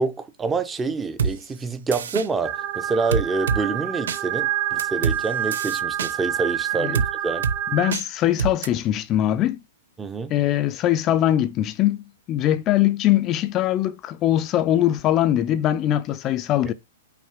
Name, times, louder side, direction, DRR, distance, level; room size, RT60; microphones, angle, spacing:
voice 1, 0.0-7.5 10.0-10.3, right 4 dB, 10° right, 0.6 m, -27 dB
sound 1, 1.2-1.3 1.9-2.3 3.1-3.6 4.1-4.2 4.8-5.2 5.5-6.1 6.9-7.1 7.4-7.6 7.9-8.0 8.4-8.7, right 6 dB, 80° right, 0.7 m, -24 dB
sound 2, 2.4-7.9, right 11 dB, 30° right, 1.0 m, -27 dB
voice 2, 7.7-9.6 10.3-16.7, left 12 dB, 25° left, 0.5 m, -21 dB
5.8 x 3.6 x 5.0 m
hypercardioid pair, 150°, 0 cm